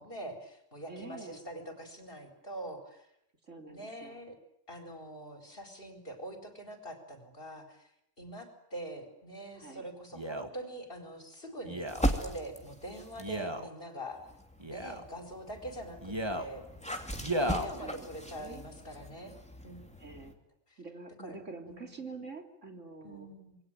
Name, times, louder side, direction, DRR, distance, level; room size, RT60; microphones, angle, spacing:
voice 1, 0.0-3.1 3.7-4.3 4.7-7.9 8.2-14.2 14.7-16.6 17.3-19.3 19.6-19.8 20.7-20.8 21.2-21.4 21.7-22.0 23.0-23.6, right 1 dB, 45° left, 5 dB, 4.9 m, -44 dB
voice 2, 0.9-1.4 3.4-4.2 9.6-9.9 17.8-18.7 20.0-20.4 20.8-23.3, right 3 dB, 80° right, 4 dB, 3.7 m, -46 dB
Male speech man speaking, 10.1-10.5 11.6-12.1 13.2-13.7 14.6-15.1 16.0-16.5 17.2-17.7 18.4-18.5, right 1 dB, 20° right, 2.3 m, -34 dB
sound 1, 11.9-13.5 14.1-20.3, equal, 5° left, 2.9 m, -38 dB
27.5 x 22.0 x 9.2 m, 0.79 s
omnidirectional pair, 1.3 m